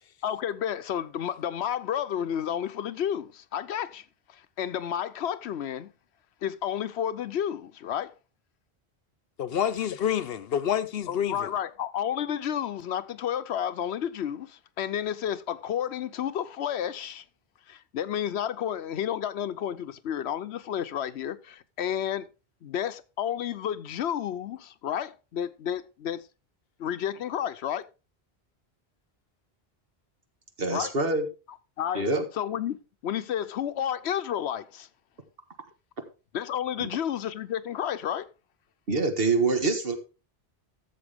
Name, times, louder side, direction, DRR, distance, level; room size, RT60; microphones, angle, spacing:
voice 1, 0.2-5.9 6.4-8.1 11.1-17.2 17.7-22.3 22.6-26.2 26.8-27.9 30.7-30.9 31.8-32.1 32.3-32.8 33.0-34.9 36.3-38.3, left 9 dB, 90° left, 1.0 m, -31 dB
voice 2, 9.4-11.5, left 9 dB, 65° left, 0.9 m, -28 dB
voice 3, 30.6-31.3 31.9-32.2 36.8-36.9 38.9-40.0, right 3 dB, 60° right, 1.8 m, -25 dB
13.0 x 7.4 x 3.6 m
omnidirectional pair, 1.1 m